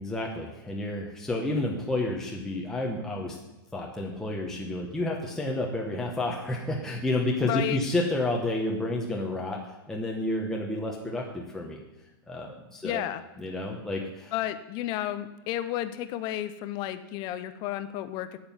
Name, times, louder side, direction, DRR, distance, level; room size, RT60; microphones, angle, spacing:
voice 1, 0.0-3.4 3.7-11.8 12.3-13.0 13.4-14.3, left 2 dB, 5° left, -2 dB, 1.1 m, -30 dB
voice 2, 7.4-7.8 12.8-13.2 14.3-18.4, left 13 dB, 35° left, 11 dB, 0.8 m, -32 dB
8.8 x 7.7 x 7.4 m, 1.0 s
hypercardioid pair, 150°, 13 cm